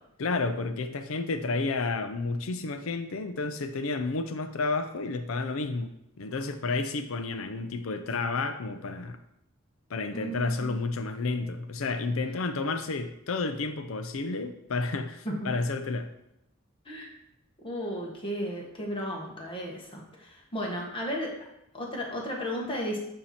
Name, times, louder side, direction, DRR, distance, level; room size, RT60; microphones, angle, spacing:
voice 1, 0.2-9.2 9.9-16.1, left 3 dB, 75° left, 8 dB, 0.6 m, -31 dB
voice 2, 10.1-10.7 15.2-15.5 16.8-17.1 17.6-21.3 21.7-23.0, equal, 25° left, -2 dB, 1.2 m, -34 dB
8.6 x 2.9 x 4.2 m, 0.83 s
head